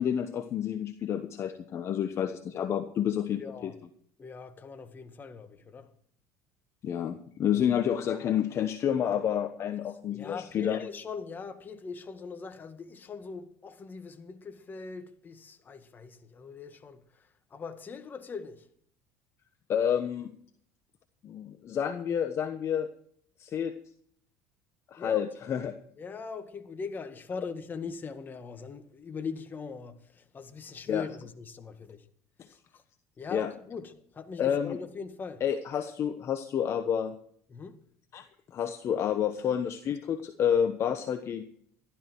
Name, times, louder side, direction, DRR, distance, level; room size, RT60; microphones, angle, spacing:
voice 1, 0.0-3.4 6.8-10.8 19.7-20.3 21.2-22.9 23.4-23.7 24.9-25.8 30.9-31.0 32.4-32.5 33.3-33.5 34.4-34.8 35.4-37.1 38.1-38.2 38.5-41.4, left 9 dB, 45° left, 1.1 m, -29 dB
voice 2, 3.4-3.8 4.2-5.9 7.5-7.7 10.1-18.7 25.0-25.2 26.0-32.1 32.4-32.6 33.2-35.4 37.5-37.8, left 5 dB, 30° left, 1.9 m, -41 dB
15.0 x 12.5 x 4.6 m
supercardioid pair, 95°, 6 cm